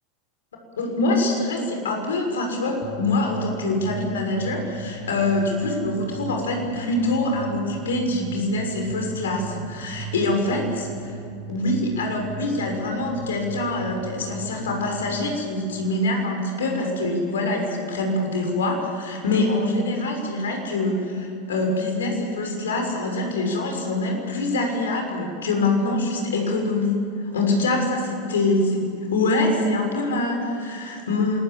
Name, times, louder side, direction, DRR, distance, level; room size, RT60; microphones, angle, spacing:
voice 1, 0.8-11.2 11.5-31.4, left 2 dB, 75° left, 2 dB, 6.3 m, -24 dB
sound 1, 2.8-15.0, right 5 dB, 40° right, 4.6 m, -37 dB
27.0 x 21.0 x 7.6 m, 2.6 s
figure-of-eight pair, 85°, 0 cm